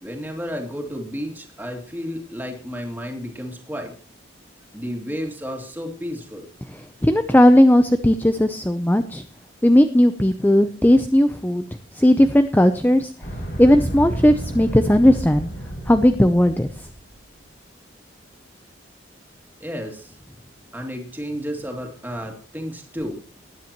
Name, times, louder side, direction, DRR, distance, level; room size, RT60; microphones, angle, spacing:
voice 1, 0.0-3.9 4.7-6.4 19.6-20.1 20.7-23.2, equal, 10° right, 2 dB, 2.6 m, -32 dB
voice 2, 7.0-9.2 9.6-11.6 11.9-13.1 13.6-15.5 15.9-16.7, left 1 dB, 10° left, 9 dB, 0.6 m, -16 dB
sound 1, 13.2-17.1, right 1 dB, 55° left, 5.6 m, -31 dB
19.5 x 10.5 x 3.0 m, 0.41 s
head